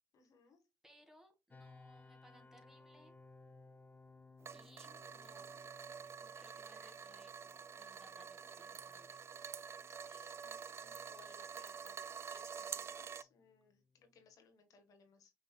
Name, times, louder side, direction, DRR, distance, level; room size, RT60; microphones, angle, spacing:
voice 1, 0.1-0.6 10.1-12.0 12.3-15.3, left 4 dB, 60° left, 6 dB, 1.2 m, -64 dB
voice 2, 0.8-3.1 4.5-5.5 6.2-9.2, equal, 5° right, 4 dB, 1.7 m, -65 dB
sound 1, 1.5-14.3, left 3 dB, 25° left, 0.7 m, -63 dB
sound 2, 4.4-13.2, right 7 dB, 40° right, 0.4 m, -48 dB
5.9 x 3.9 x 2.3 m, 0.24 s
hypercardioid pair, 50°, 7 cm